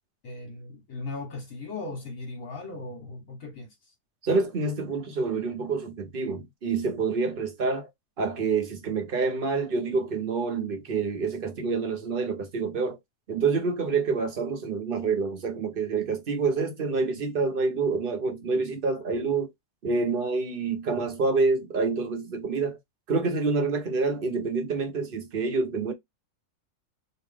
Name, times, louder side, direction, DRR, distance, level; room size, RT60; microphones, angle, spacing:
voice 1, 0.2-3.7, left 3 dB, 60° left, 1.6 m, -38 dB
voice 2, 4.2-7.9 8.2-13.0 13.3-19.5 19.8-22.8 23.1-25.9, right 4 dB, 45° right, 0.8 m, -27 dB
3.2 x 2.7 x 3.4 m
omnidirectional pair, 1.7 m